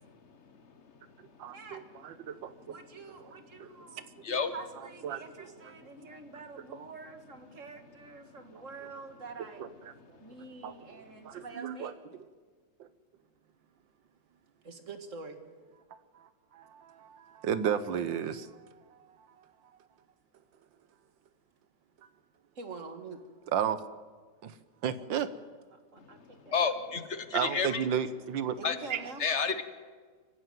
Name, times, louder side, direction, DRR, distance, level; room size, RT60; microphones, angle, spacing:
voice 1, 1.4-2.7 3.1-3.3 3.6-3.7 4.0-4.1 5.0-5.6 6.7-6.8 8.6-8.9 9.6-9.9 10.6-12.3 12.8-12.9 16.1-19.5 23.5-23.8 24.4-24.6 24.8-25.3 27.3-28.6 28.9-29.1, right 8 dB, 75° right, 14 dB, 1.7 m, -34 dB
voice 2, 2.7-4.0 4.5-9.8 10.2-11.9 14.6-15.4 22.6-23.2 25.7-26.6 28.6-29.2, right 4 dB, 40° right, 7 dB, 2.1 m, -46 dB
voice 3, 26.5-27.8 28.6-28.8 29.2-29.6, left 5 dB, 40° left, 10 dB, 1.4 m, -30 dB
25.0 x 15.0 x 9.3 m, 1.5 s
omnidirectional pair, 2.1 m